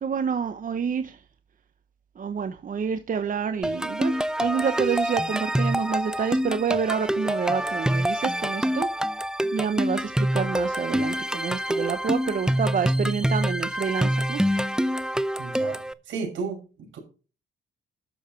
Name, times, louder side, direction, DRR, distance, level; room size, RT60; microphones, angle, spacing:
voice 1, 0.0-1.2 2.2-4.1 4.4-8.9 9.5-14.4, right 6 dB, 40° right, 0.9 m, -28 dB
sound 1, 3.6-15.9, equal, 5° right, 0.6 m, -26 dB
voice 2, 15.4-15.8 16.1-17.0, right 4 dB, 75° right, 6.1 m, -33 dB
11.5 x 7.2 x 4.5 m
cardioid pair, 90°, 20 cm